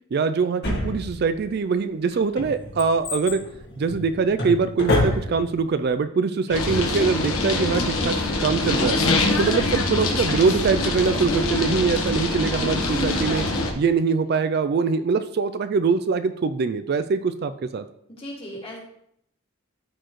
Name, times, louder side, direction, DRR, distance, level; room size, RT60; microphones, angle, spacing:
voice 1, 0.1-3.4 3.8-9.0 9.4-13.5 13.8-17.8, right 5 dB, 45° right, 11 dB, 0.3 m, -23 dB
Drawer open or close, 0.6-1.5 2.1-5.6 5.9-6.0, left 1 dB, 50° left, 1.9 m, -26 dB
sound 1, 6.5-13.7, left 2 dB, 75° left, 1.2 m, -24 dB
voice 2, 18.2-18.8, equal, 25° left, -3 dB, 2.1 m, -37 dB
13.0 x 4.5 x 3.1 m, 0.74 s
head